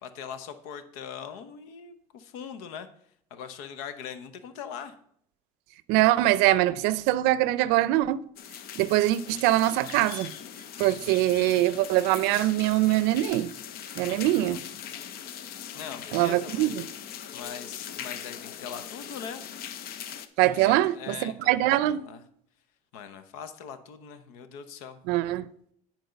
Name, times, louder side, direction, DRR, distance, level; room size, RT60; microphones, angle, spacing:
voice 1, 0.0-2.9 3.3-4.9 14.0-14.6 15.7-16.7 17.3-19.4 20.5-22.2 22.9-25.0, left 7 dB, 90° left, 0.9 m, -41 dB
voice 2, 5.9-8.2 8.8-10.3 10.8-13.5 14.0-14.6 16.1-16.9 20.4-22.1 25.1-25.5, right 15 dB, 80° right, 0.5 m, -23 dB
sound 1, 8.4-20.3, left 9 dB, 60° left, 0.7 m, -40 dB
10.0 x 4.5 x 5.2 m
supercardioid pair, 90°, 17 cm